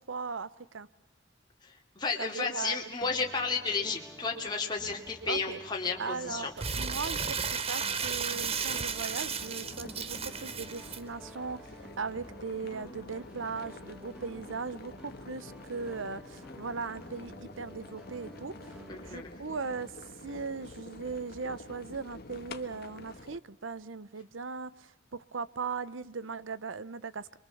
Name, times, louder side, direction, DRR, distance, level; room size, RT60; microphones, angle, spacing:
voice 1, 0.1-0.9 2.2-2.8 5.3-5.6 6.0-11.7 12.0-18.8 19.1-19.9 20.2-27.4, right 4 dB, 85° right, 17 dB, 0.9 m, -38 dB
voice 2, 1.6-6.5 18.9-19.3, left 4 dB, 20° left, -1 dB, 2.7 m, -33 dB
sound 1, 3.0-19.2, equal, 5° right, 1.5 m, -51 dB
Crumpling crinkling, 6.6-11.0, right 6 dB, 30° right, 0.9 m, -34 dB
sound 2, 7.9-23.4, left 2 dB, 55° left, 1.4 m, -48 dB
27.5 x 23.0 x 7.1 m, 0.85 s
head